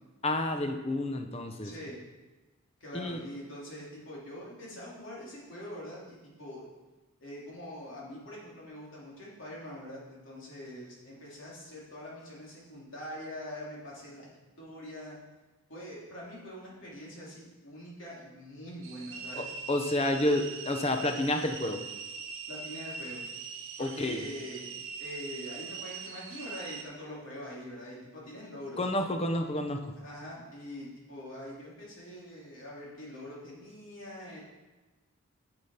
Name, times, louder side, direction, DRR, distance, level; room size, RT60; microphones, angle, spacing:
voice 1, 0.2-1.7 2.9-3.2 19.3-21.8 23.8-24.2 28.8-29.9, left 1 dB, 30° left, 6 dB, 0.8 m, -30 dB
voice 2, 1.6-2.0 2.8-6.6 7.2-14.3 14.6-15.1 15.7-19.5 22.5-23.2 23.8-24.7 25.0-28.8 30.0-34.4, equal, 60° left, -5 dB, 3.1 m, -44 dB
sound 1, 18.8-26.8, right 5 dB, 70° right, 1.0 m, -42 dB
7.9 x 6.9 x 5.7 m, 1.2 s
head